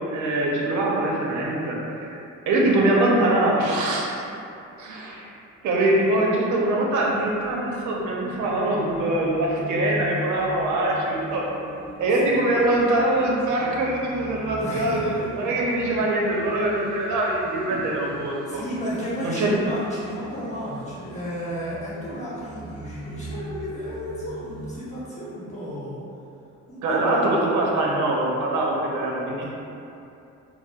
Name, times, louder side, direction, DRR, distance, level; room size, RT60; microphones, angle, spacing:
voice 1, 0.1-2.2 2.5-4.1 4.8-5.3 5.6-11.4 12.0-18.6 19.2-19.5 26.8-29.4, right 1 dB, 75° right, -2 dB, 0.6 m, -23 dB
sound 1, 7.0-24.8, equal, 30° right, 0.7 m, -41 dB
voice 2, 14.6-15.3 18.5-26.0 26.7-27.2 29.4-29.5, equal, 25° left, -9 dB, 1.0 m, -33 dB
4.2 x 2.0 x 2.4 m, 2.7 s
cardioid pair, 90°, 30 cm